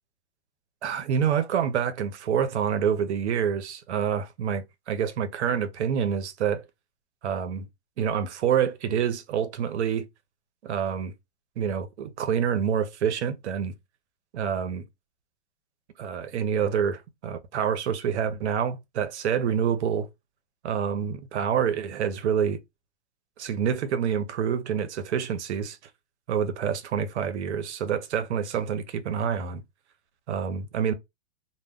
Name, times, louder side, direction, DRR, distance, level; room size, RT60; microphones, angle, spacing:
voice 1, 0.8-6.6 7.2-7.7 8.0-10.1 10.6-11.1 11.6-13.7 14.3-14.8 16.0-20.1 20.6-22.6 23.4-25.8 26.3-29.6 30.3-30.9, right 8 dB, 75° right, 0.6 m, -27 dB
2.1 x 2.1 x 3.4 m
hypercardioid pair, 150°, 34 cm